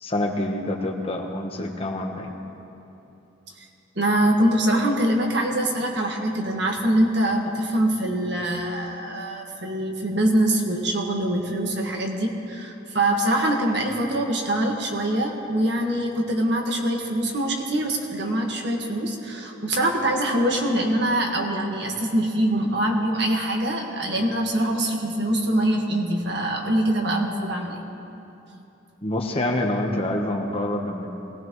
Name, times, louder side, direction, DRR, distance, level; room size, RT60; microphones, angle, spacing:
voice 1, 0.0-2.4 29.0-31.1, left 1 dB, 30° left, 2 dB, 1.1 m, -26 dB
voice 2, 3.9-27.8, right 1 dB, 55° right, 1 dB, 1.7 m, -24 dB
22.5 x 18.5 x 3.2 m, 2.9 s
head